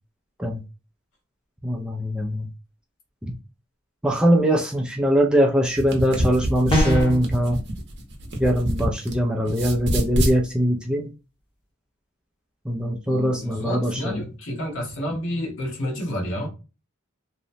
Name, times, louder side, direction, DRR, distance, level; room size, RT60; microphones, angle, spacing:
voice 1, 1.6-2.5 3.2-3.3 4.0-7.6 8.4-11.1 12.7-14.3, equal, 5° right, 0.3 m, -22 dB
sound 1, 5.6-9.1 9.4-10.4, equal, 50° right, 0.7 m, -26 dB
sound 2, 6.7-7.2, left 1 dB, 25° left, 0.9 m, -21 dB
voice 2, 13.1-16.5, equal, 60° left, 1.0 m, -30 dB
2.8 x 2.1 x 2.5 m
head